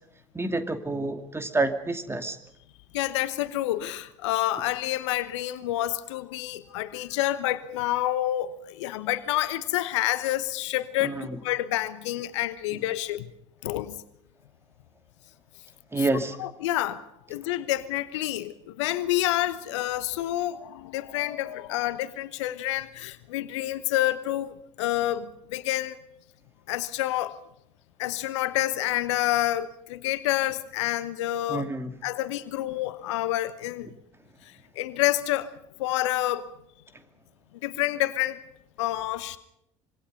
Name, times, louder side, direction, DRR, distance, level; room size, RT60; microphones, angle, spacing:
voice 1, 0.3-2.4 11.0-11.4 15.9-16.4 31.5-31.9, right 2 dB, 15° right, 7 dB, 2.6 m, -28 dB
voice 2, 2.9-13.3 13.6-14.0 16.0-16.1 16.4-17.0 17.3-26.0 26.7-27.3 28.0-31.7 32.0-33.9 34.4-35.5 35.8-36.5 37.6-38.4 38.8-39.4, left 15 dB, 70° left, 15 dB, 1.1 m, -28 dB
25.5 x 23.0 x 5.5 m, 0.81 s
figure-of-eight pair, 60°, 16 cm